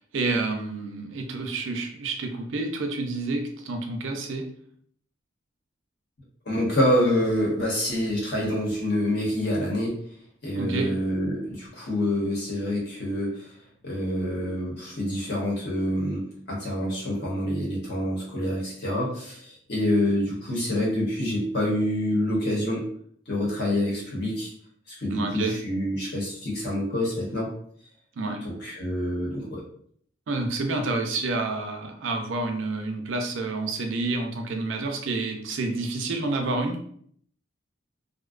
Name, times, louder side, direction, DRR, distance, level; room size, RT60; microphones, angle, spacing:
voice 1, 0.1-4.5 10.6-10.9 25.1-25.5 28.2-28.4 30.3-36.8, right 3 dB, 80° right, 4 dB, 0.5 m, -29 dB
voice 2, 6.5-9.9 10.4-13.5 13.8-22.9 23.3-24.5 24.9-27.5 28.4-29.6, left 1 dB, 55° left, -4 dB, 1.0 m, -27 dB
2.6 x 2.1 x 2.4 m, 0.62 s
head